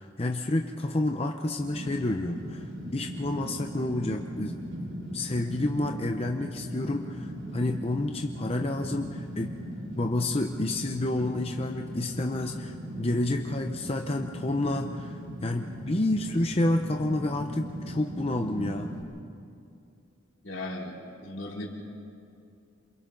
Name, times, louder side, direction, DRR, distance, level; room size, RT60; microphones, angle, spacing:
voice 1, 0.0-4.6 5.1-9.5 9.9-18.9, left 1 dB, 30° left, 4 dB, 0.8 m, -29 dB
Fire, 1.6-19.0, equal, 80° right, 5.7 m, -39 dB
voice 2, 20.4-20.9 21.2-21.7, left 2 dB, 75° left, -1 dB, 3.4 m, -36 dB
28.0 x 28.0 x 4.0 m, 2.5 s
head